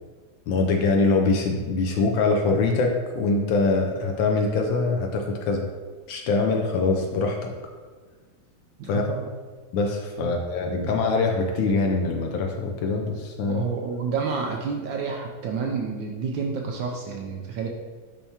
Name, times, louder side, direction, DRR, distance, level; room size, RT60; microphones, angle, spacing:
voice 1, 0.5-5.7 6.1-7.5 8.9-9.0 9.7-13.6, left 3 dB, 70° left, 2 dB, 1.2 m, -23 dB
voice 2, 8.8-9.3 10.2-10.4 13.4-17.7, right 5 dB, 75° right, 1 dB, 1.1 m, -29 dB
10.0 x 3.4 x 2.8 m, 1.5 s
omnidirectional pair, 2.4 m